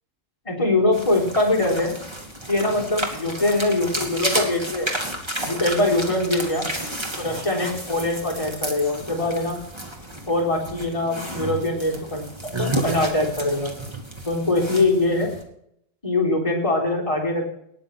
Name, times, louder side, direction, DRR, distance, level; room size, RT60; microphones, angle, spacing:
voice 1, 0.5-1.9 2.5-4.9 5.4-6.7 7.2-9.6 10.3-12.3 12.6-13.7 14.2-15.3 16.0-17.5, left 2 dB, 25° left, -3 dB, 4.0 m, -22 dB
sound 1, 0.9-15.4, right 1 dB, 20° right, 2.4 m, -32 dB
19.0 x 7.2 x 6.0 m, 0.72 s
omnidirectional pair, 1.3 m